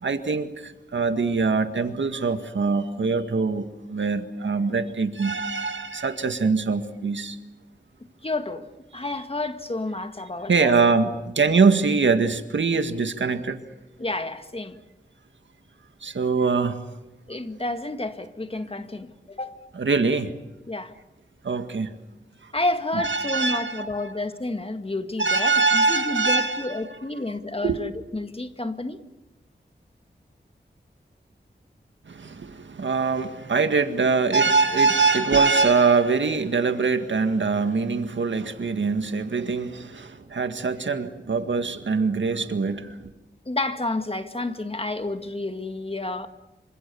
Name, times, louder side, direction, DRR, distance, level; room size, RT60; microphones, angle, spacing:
voice 1, 0.0-7.4 10.5-13.6 16.0-16.8 19.8-20.3 21.4-21.9 22.9-24.1 25.2-26.8 27.6-27.8 32.1-42.9, right 4 dB, 90° right, 1.9 m, -23 dB
voice 2, 8.2-10.7 14.0-14.8 17.3-19.6 20.7-20.9 22.5-29.0 43.5-46.3, left 2 dB, 30° left, 2.0 m, -30 dB
27.5 x 26.0 x 7.1 m
wide cardioid pair, 90°, 19 cm